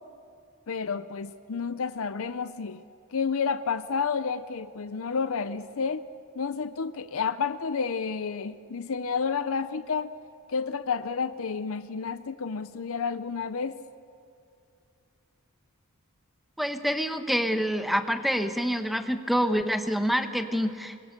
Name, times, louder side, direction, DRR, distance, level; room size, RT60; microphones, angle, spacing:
voice 1, 0.7-2.8 3.1-6.1 6.4-10.1 10.5-13.8, left 5 dB, 65° left, 11 dB, 0.6 m, -30 dB
voice 2, 16.6-20.9, equal, ahead, 7 dB, 1.1 m, -27 dB
27.5 x 22.5 x 6.6 m, 2.5 s
head